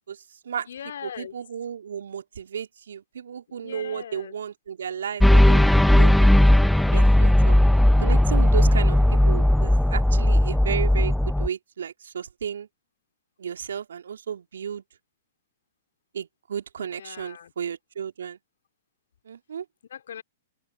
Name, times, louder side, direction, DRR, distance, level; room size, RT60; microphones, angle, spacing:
voice 1, 0.1-0.7 1.0-6.3 6.9-7.6 8.0-12.7 13.4-14.8 16.1-18.4 19.2-19.6, right 8 dB, 70° right, 2.9 m, -33 dB
voice 2, 0.7-1.4 3.6-4.3 16.8-17.5 19.9-20.2, left 9 dB, 65° left, 3.2 m, -40 dB
sound 1, 5.2-11.5, left 1 dB, ahead, 0.4 m, -17 dB
open air
figure-of-eight pair, 110°, 0 cm